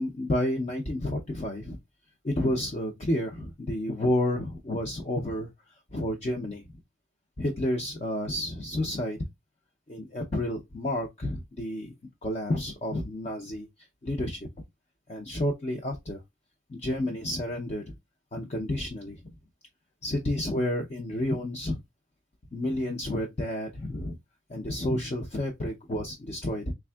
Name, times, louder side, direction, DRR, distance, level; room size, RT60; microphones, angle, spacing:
voice 1, 0.0-1.8 2.2-5.5 5.9-6.6 7.4-9.2 9.9-11.9 12.2-13.7 14.0-14.5 15.1-16.2 16.7-17.8 18.3-19.3 20.0-21.8 22.5-24.2 24.5-26.7, left 1 dB, 30° left, 0.4 m, -30 dB
3.4 x 3.4 x 2.2 m
head